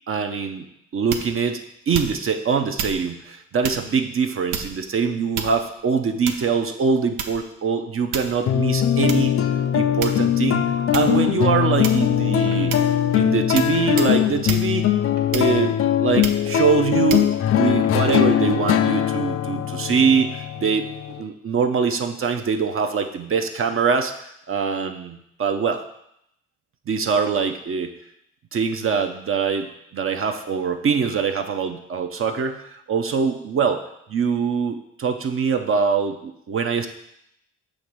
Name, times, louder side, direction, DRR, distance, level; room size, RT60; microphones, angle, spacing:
voice 1, 0.1-0.7 0.9-9.3 9.7-12.7 13.1-14.9 15.3-20.9 21.2-25.8 26.9-27.9 28.5-33.8 34.1-36.9, right 5 dB, 45° right, 6 dB, 0.6 m, -23 dB
sound 1, 1.1-1.5 1.9-2.3 2.8-3.0 3.6-3.9 4.5-4.9 5.3-5.8 6.3-6.6 7.2-7.5 8.1-8.4 9.1-9.2 10.0-10.4 10.9-11.2 11.8-12.2 12.7-12.9 13.6-13.7 14.0-14.2 14.5-14.7 15.3-15.7 16.2-16.5 17.1-17.3, right 7 dB, 90° right, 0.7 m, -30 dB
sound 2, 8.5-21.2, left 10 dB, 50° left, 0.5 m, -21 dB
sound 3, 11.1-11.4 12.4-12.7 13.7-13.9 15.0-15.4 16.3-16.7 17.8-18.1, right 3 dB, 65° right, 1.5 m, -45 dB
6.5 x 3.1 x 5.9 m, 0.76 s
cardioid pair, 90°, 30 cm